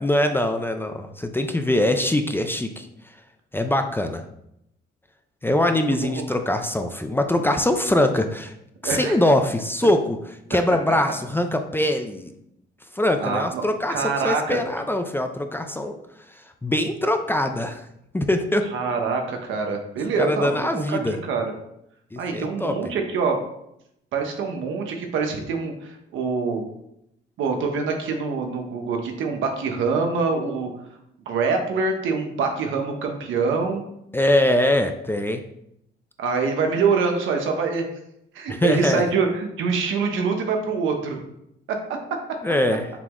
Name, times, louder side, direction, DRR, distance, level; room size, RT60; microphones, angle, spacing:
voice 1, 0.0-2.9 3.5-4.2 5.4-8.5 8.8-10.2 10.5-12.3 12.9-15.9 16.6-17.8 18.1-18.7 20.2-21.2 22.1-22.8 34.1-35.4 38.5-39.0 42.4-42.9, left 1 dB, 10° left, 6 dB, 0.3 m, -22 dB
voice 2, 8.8-9.1 13.2-13.6 13.9-14.6 18.7-21.5 22.2-23.4 24.1-26.7 27.4-30.7 31.3-33.8 36.2-37.8 38.3-41.2 41.7-41.8, right 4 dB, 80° right, 3 dB, 0.8 m, -25 dB
5.9 x 2.0 x 3.6 m, 0.79 s
cardioid pair, 90°, 20 cm